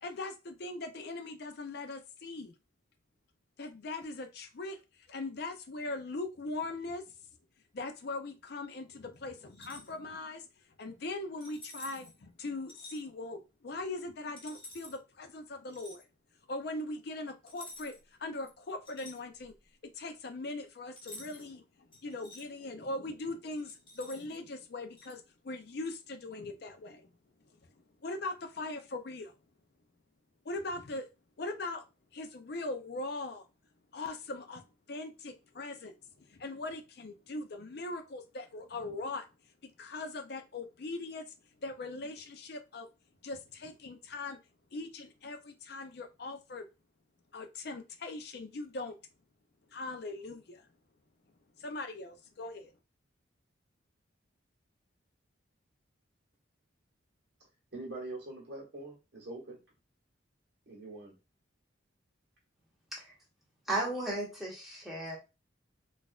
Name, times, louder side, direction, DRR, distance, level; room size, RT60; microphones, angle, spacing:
voice 1, 0.0-2.5 3.6-4.8 5.1-7.2 7.7-10.5 10.8-16.1 16.5-17.9 18.2-19.5 19.9-27.1 28.0-29.3 30.5-31.1 31.4-31.8 32.1-33.4 33.9-34.6 34.9-35.9 36.2-39.3 39.8-41.3 41.6-42.9 43.2-44.4 44.7-46.6 47.3-48.9 49.7-50.7 51.6-52.7, left 2 dB, 50° left, 0.5 m, -40 dB
sound 1, 9.5-9.9 11.4-12.1 12.7-13.0 14.4-15.0 15.7-16.0 17.5-18.1 18.4-19.6 21.0-21.5 21.9-22.4 23.5-24.4 25.0-25.1, left 1 dB, 25° left, 0.8 m, -50 dB
voice 2, 57.7-59.6 60.7-61.1, right 2 dB, 55° right, 1.4 m, -43 dB
voice 3, 63.7-65.2, right 1 dB, ahead, 1.0 m, -35 dB
4.0 x 2.5 x 2.3 m
head